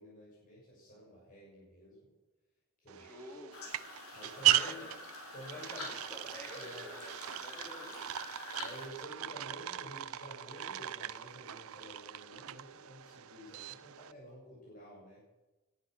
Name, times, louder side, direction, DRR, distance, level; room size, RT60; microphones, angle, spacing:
voice 1, 0.0-2.1 2.8-3.4 4.1-4.9 5.3-5.9 6.5-6.9 8.6-15.2, equal, 40° left, -6 dB, 6.3 m, -51 dB
sound 1, 2.9-14.1, right 15 dB, 85° right, 0.5 m, -37 dB
voice 2, 3.0-3.5 4.5-4.9 5.5-8.1, equal, 10° left, -2 dB, 4.0 m, -49 dB
sound 2, 3.5-8.9, left 2 dB, 85° left, 4.4 m, -45 dB
18.5 x 10.5 x 6.3 m, 1.1 s
head